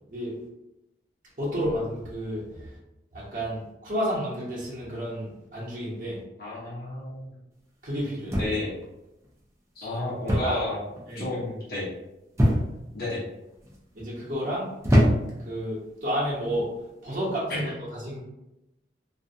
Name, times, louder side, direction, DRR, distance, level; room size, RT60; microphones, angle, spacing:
voice 1, 1.4-2.7 3.1-6.2 7.8-8.4 10.3-10.6 11.1-11.2 13.9-14.7 15.4-16.7 17.0-17.7 18.0-18.2, equal, 45° right, -6 dB, 0.8 m, -31 dB
voice 2, 6.4-7.3 8.4-8.7 9.8-10.8 11.1-11.9 12.9-13.2 17.1-17.7, left 2 dB, 55° left, -7 dB, 0.8 m, -32 dB
sound 1, 8.3-8.8 10.3-10.7 11.0-11.4 12.4-12.9 13.6-14.0 14.8-15.5 16.4-16.7, equal, 15° right, 0.4 m, -23 dB
2.5 x 2.1 x 2.6 m, 0.91 s
head